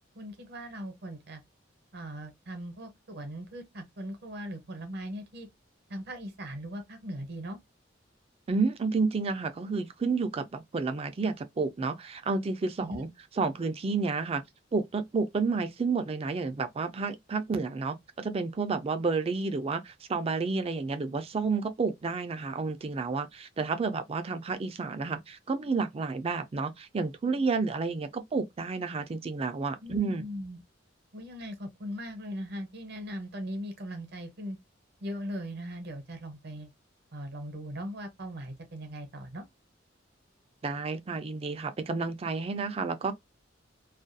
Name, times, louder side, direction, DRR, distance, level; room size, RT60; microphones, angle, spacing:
voice 1, 0.1-1.4 1.9-5.5 5.9-7.6 12.8-13.0 29.8-30.6 31.1-34.6 35.0-36.7 37.1-39.4, equal, 60° right, 0.8 m, -39 dB
voice 2, 8.5-13.1 13.4-14.4 14.7-30.2 40.6-43.1, right 4 dB, 30° right, 0.4 m, -30 dB
2.4 x 2.2 x 2.5 m
head